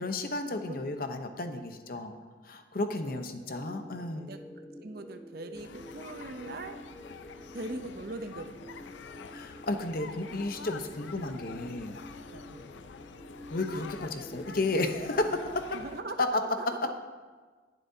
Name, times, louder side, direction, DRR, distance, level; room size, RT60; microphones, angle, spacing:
voice 1, 0.0-2.1 2.4-4.3 9.3-12.0 13.5-15.7, left 2 dB, 50° left, 6 dB, 0.8 m, -33 dB
voice 2, 3.0-3.4 4.1-7.0 7.5-8.8 12.3-12.6 15.7-16.9, right 2 dB, 50° right, 7 dB, 0.7 m, -41 dB
sound 1, 3.6-15.5, equal, 5° left, 0.4 m, -49 dB
sound 2, 5.5-16.0, left 5 dB, 75° left, 0.5 m, -47 dB
22.0 x 7.4 x 2.8 m, 1.4 s
head